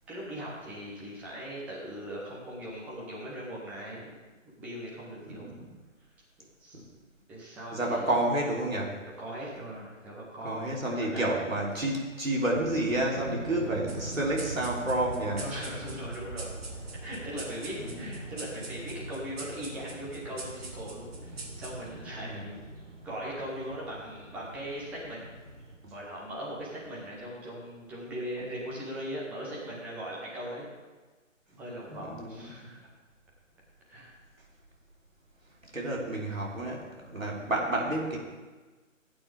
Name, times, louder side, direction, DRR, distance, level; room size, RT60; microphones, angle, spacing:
voice 1, 0.1-4.1 4.6-5.6 6.6-6.8 7.3-8.2 9.2-11.3 15.3-16.5 17.0-22.6 23.0-25.3 25.9-30.7 31.5-32.8 33.9-34.2, equal, 5° right, -5 dB, 0.9 m, -39 dB
voice 2, 7.7-8.9 10.4-15.4 17.8-18.1 22.2-22.6 25.8-25.9 31.9-32.5 35.7-38.2, right 1 dB, 85° right, -3 dB, 3.3 m, -30 dB
sound 1, 12.5-25.8, right 2 dB, 70° right, 3.6 m, -42 dB
sound 2, 13.9-22.8, right 3 dB, 50° right, 2.5 m, -46 dB
16.5 x 8.8 x 3.5 m, 1.3 s
figure-of-eight pair, 145°, 39 cm